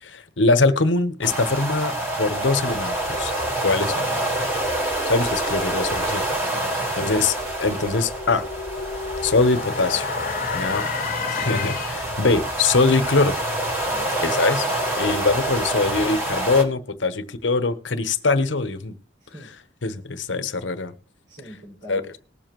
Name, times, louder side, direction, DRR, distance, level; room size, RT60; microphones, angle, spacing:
voice 1, 0.0-3.3 3.6-4.1 5.1-6.3 7.0-8.5 9.2-10.1 10.5-10.8 11.3-13.4 14.2-14.7 15.0-18.9 19.8-20.9 21.9-22.0, left 3 dB, 80° left, 1.0 m, -22 dB
sound 1, 1.2-16.6, right 1 dB, 15° right, 1.9 m, -27 dB
sound 2, 6.4-12.2, left 6 dB, 50° left, 0.5 m, -32 dB
voice 2, 6.5-7.1 10.5-11.3 13.9-14.1 19.2-19.6 19.9-20.0 21.3-22.1, equal, 85° right, 5.7 m, -44 dB
20.0 x 7.1 x 3.0 m
head